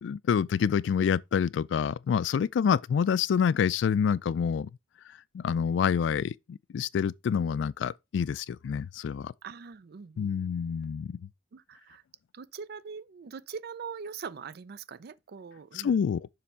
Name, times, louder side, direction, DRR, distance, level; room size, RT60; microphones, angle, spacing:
voice 1, 0.0-4.7 5.3-9.3 10.2-11.2 15.7-16.3, left 7 dB, 75° left, 0.3 m, -27 dB
voice 2, 9.4-10.5 11.5-12.0 12.3-15.9, right 6 dB, 55° right, 0.4 m, -42 dB
6.9 x 3.4 x 4.2 m
head